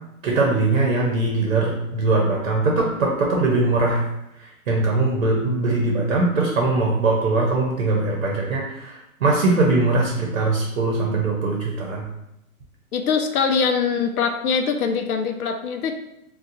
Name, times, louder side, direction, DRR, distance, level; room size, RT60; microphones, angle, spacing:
voice 1, 0.2-4.0 4.4-12.1, right 3 dB, 55° right, -1 dB, 0.8 m, -21 dB
voice 2, 12.9-15.9, left 6 dB, 80° left, 5 dB, 0.6 m, -22 dB
4.0 x 2.3 x 2.6 m, 0.84 s
hypercardioid pair, 175°, 43 cm